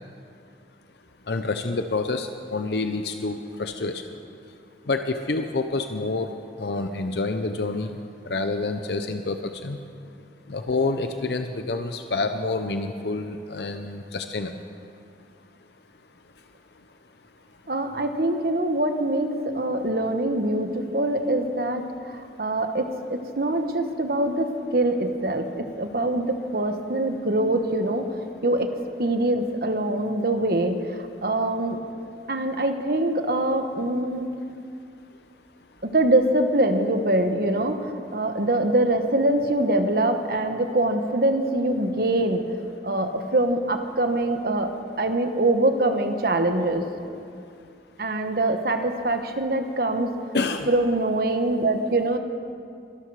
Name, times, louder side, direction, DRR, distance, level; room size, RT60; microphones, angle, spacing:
voice 1, 1.3-4.0 4.9-6.3 6.6-7.9 8.3-9.8 10.5-14.5 50.3-50.7, left 3 dB, 70° left, 7 dB, 0.7 m, -28 dB
voice 2, 17.7-28.1 28.4-28.7 29.0-30.8 31.2-31.8 32.3-34.3 35.8-42.4 42.8-44.7 45.0-46.9 48.0-50.1 50.7-52.2, right 1 dB, 55° right, 7 dB, 1.2 m, -24 dB
23.0 x 12.5 x 4.8 m, 2.4 s
head